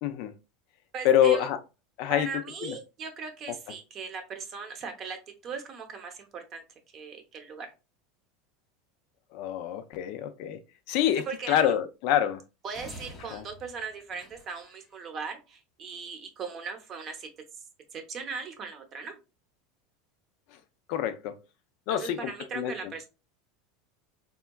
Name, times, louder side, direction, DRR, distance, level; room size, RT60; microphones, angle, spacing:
voice 1, 0.0-0.3 1.0-1.6 2.0-2.3 2.7-2.8 9.3-10.6 10.9-12.4 13.3-13.4 20.9-21.3 21.9-22.7, left 10 dB, 55° left, 0.4 m, -26 dB
voice 2, 0.9-1.5 2.1-5.2 5.4-6.6 6.9-7.7 11.3-11.7 12.6-17.3 17.9-19.2 21.9-23.1, right 5 dB, 30° right, 0.7 m, -39 dB
sound 1, 12.7-14.9, left 1 dB, 20° left, 0.8 m, -48 dB
3.5 x 2.2 x 2.2 m
supercardioid pair, 150°, 0 cm